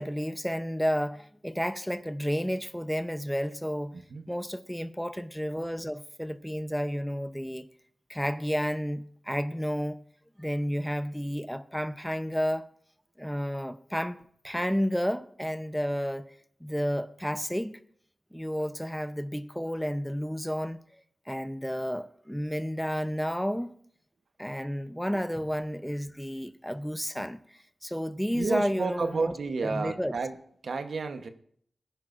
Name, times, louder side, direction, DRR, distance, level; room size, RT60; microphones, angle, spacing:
voice 1, 0.0-4.0 4.3-7.7 8.1-10.0 10.4-12.6 13.2-14.2 14.4-16.3 16.6-17.8 18.3-20.8 21.3-23.7 24.4-27.4 27.8-29.3 29.6-30.1, equal, ahead, 0.7 m, -31 dB
voice 2, 3.9-4.2 28.3-30.4 30.6-31.3, right 4 dB, 85° right, 1.0 m, -31 dB
19.0 x 10.0 x 2.5 m
wide cardioid pair, 75°, 0 cm